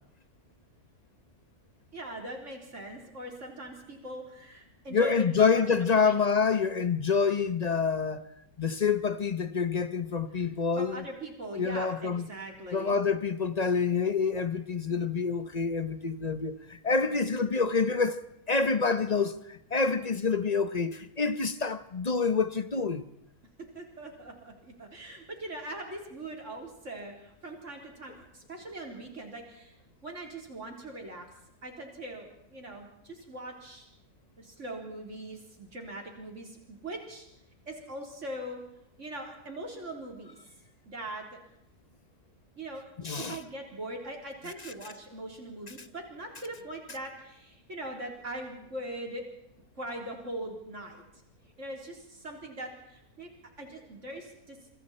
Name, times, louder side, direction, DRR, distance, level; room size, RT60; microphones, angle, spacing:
voice 1, 1.9-6.2 10.4-10.5 10.8-13.0 23.7-29.8 30.0-31.3 31.6-33.9 34.4-37.3 37.7-38.6 39.0-40.4 40.9-41.2 42.6-42.9 43.3-49.2 49.8-51.0 51.6-53.3 53.6-54.6, right 1 dB, 50° right, 4.3 m, -41 dB
voice 2, 4.9-8.2 8.6-11.1 11.6-12.3 12.7-18.2 18.5-23.1 43.0-43.4 44.6-44.7, left 5 dB, 35° left, 0.8 m, -27 dB
27.0 x 24.5 x 4.4 m
omnidirectional pair, 1.6 m